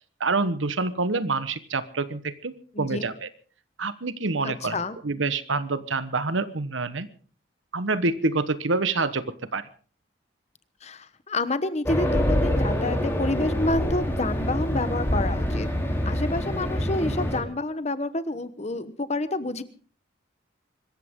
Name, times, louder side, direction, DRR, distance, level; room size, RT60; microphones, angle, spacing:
voice 1, 0.2-3.3 3.8-4.8 5.0-7.1 7.7-9.7, right 3 dB, 90° right, 14 dB, 1.2 m, -27 dB
voice 2, 2.7-3.1 4.4-5.0 10.8-15.7 16.0-19.6, left 2 dB, 35° left, 13 dB, 1.1 m, -29 dB
Race car auto racing, 11.9-17.4, equal, 10° left, 3.3 m, -25 dB
25.0 x 14.5 x 3.7 m, 0.40 s
head